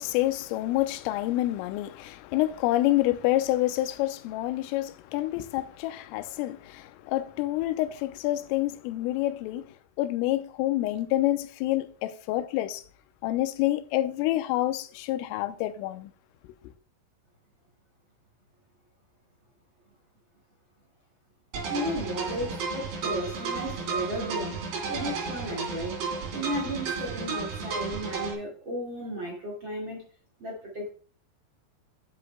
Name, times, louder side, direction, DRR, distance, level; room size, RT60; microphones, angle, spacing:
voice 1, 0.0-9.7 10.0-12.8 13.2-16.1 16.4-16.5, left 15 dB, 85° left, 3.2 m, -28 dB
sound 1, 21.5-28.3, right 5 dB, 55° right, 4.4 m, -33 dB
voice 2, 21.7-30.0 30.4-30.9, equal, 85° right, 1.0 m, -34 dB
10.5 x 9.7 x 2.2 m
omnidirectional pair, 6.0 m